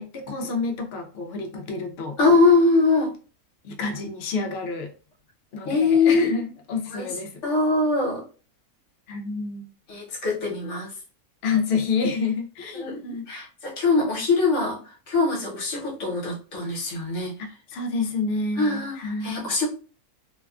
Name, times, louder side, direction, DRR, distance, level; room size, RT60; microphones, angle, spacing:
voice 1, 0.0-2.2 3.6-4.9 5.5-7.3 9.1-9.7 11.4-13.3 17.4-19.3, left 4 dB, 75° left, 3 dB, 0.5 m, -29 dB
voice 2, 2.2-3.1 5.7-6.3 6.9-7.1 7.4-8.2 9.9-10.9 12.7-14.8 15.1-17.3 18.6-19.0 19.2-19.7, left 3 dB, 55° left, -2 dB, 1.2 m, -22 dB
2.7 x 2.2 x 2.3 m, 0.37 s
omnidirectional pair, 1.6 m